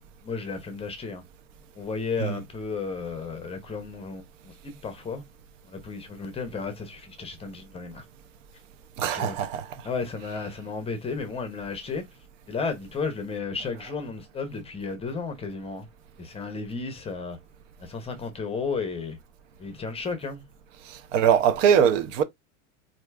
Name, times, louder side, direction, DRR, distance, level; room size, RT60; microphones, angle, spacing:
voice 1, 0.2-1.2 1.7-5.2 5.6-8.0 9.0-9.4 9.8-12.0 12.5-15.9 16.2-17.4 17.8-19.2 19.6-20.4, left 4 dB, 15° left, 0.6 m, -33 dB
voice 2, 9.0-9.9 20.9-22.2, right 8 dB, 70° right, 0.7 m, -22 dB
4.3 x 2.6 x 2.3 m
supercardioid pair, 130°, 40 cm